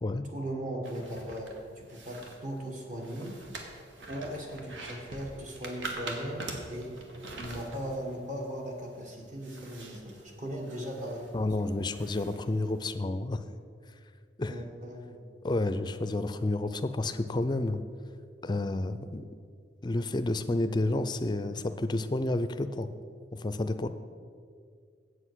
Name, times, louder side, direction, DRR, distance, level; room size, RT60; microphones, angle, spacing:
voice 1, 0.3-3.4 4.1-7.0 7.3-11.8 14.5-15.2, equal, 40° right, 0 dB, 1.6 m, -38 dB
sound 1, 0.8-12.9, right 2 dB, 85° right, 1.4 m, -45 dB
voice 2, 11.3-13.4 14.4-14.6 15.4-17.8 18.4-19.2 19.8-22.9 23.3-23.9, left 2 dB, 25° left, 10 dB, 0.4 m, -30 dB
8.0 x 7.9 x 6.3 m, 2.2 s
head